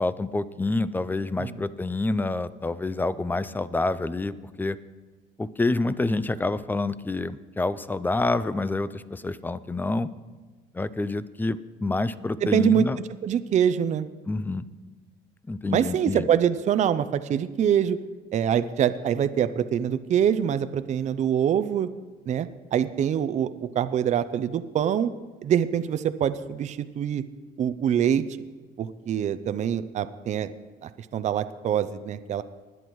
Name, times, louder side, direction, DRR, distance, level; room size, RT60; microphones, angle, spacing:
voice 1, 0.0-4.8 5.4-10.1 10.7-13.0 14.3-14.6 15.5-16.3, left 2 dB, 10° left, 16 dB, 0.4 m, -27 dB
voice 2, 12.4-12.9 13.2-14.1 15.7-18.0 18.3-21.9 22.3-25.1 25.4-27.2 27.6-28.2 28.8-30.5 30.8-32.4, right 9 dB, 45° right, 12 dB, 0.5 m, -24 dB
19.5 x 11.0 x 3.1 m, 1.3 s
cardioid pair, 110°, 17 cm